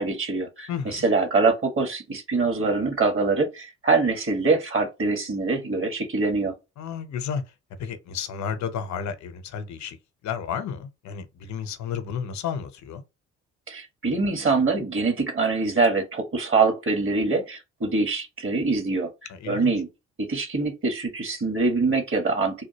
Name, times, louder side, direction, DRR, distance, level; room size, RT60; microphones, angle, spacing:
voice 1, 0.0-6.5 13.7-19.1 19.4-19.9 20.2-22.6, right 3 dB, 35° right, 1.5 m, -24 dB
voice 2, 0.7-1.1 6.8-7.4 7.8-10.0 10.2-13.0 19.3-19.7, left 7 dB, 55° left, 0.8 m, -32 dB
3.5 x 2.6 x 2.9 m
hypercardioid pair, 50°, 35 cm